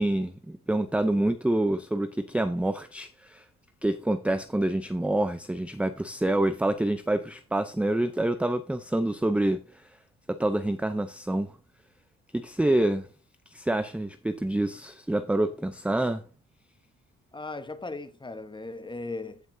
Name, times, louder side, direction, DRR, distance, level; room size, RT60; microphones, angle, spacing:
voice 1, 0.0-3.4 3.8-9.6 10.4-11.5 12.3-13.1 13.5-16.2, right 1 dB, 5° right, 0.5 m, -27 dB
voice 2, 17.3-19.4, left 3 dB, 15° left, 1.1 m, -37 dB
15.5 x 5.9 x 2.7 m
cardioid pair, 90°, 30 cm